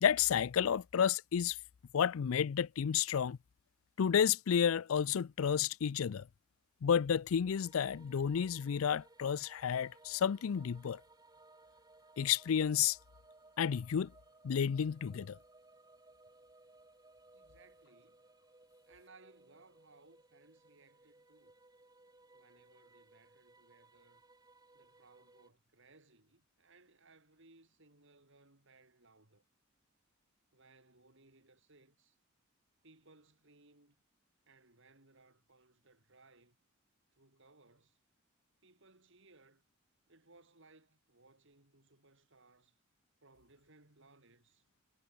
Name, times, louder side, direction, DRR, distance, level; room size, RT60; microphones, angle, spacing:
voice 1, 0.0-1.6 1.9-3.4 4.0-6.3 6.8-11.0 12.2-13.0 13.6-14.1 14.4-15.4, left 8 dB, 80° left, 0.4 m, -31 dB
sound 1, 7.4-25.5, right 2 dB, 20° right, 3.2 m, -63 dB
voice 2, 17.3-18.2 18.9-21.5 22.3-24.2 24.7-29.4 30.5-32.2 32.8-34.0 34.5-36.6 37.2-38.0 38.6-39.6 40.1-42.8 43.2-44.6, right 3 dB, 65° right, 4.9 m, -64 dB
head